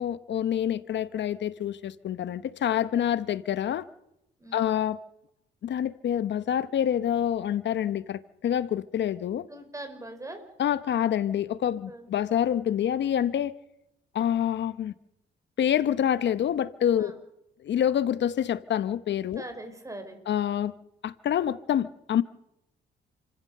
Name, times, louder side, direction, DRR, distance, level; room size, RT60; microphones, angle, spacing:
voice 1, 0.0-3.8 4.5-5.0 5.6-9.5 10.6-13.5 14.1-14.9 15.6-17.1 17.6-19.4 20.3-20.7 21.0-22.2, left 10 dB, 65° left, 1.1 m, -27 dB
voice 2, 9.5-10.4 11.9-12.1 17.0-17.2 19.4-20.2, right 1 dB, 15° right, 5.5 m, -41 dB
29.0 x 15.0 x 6.7 m
cardioid pair, 90°, 20 cm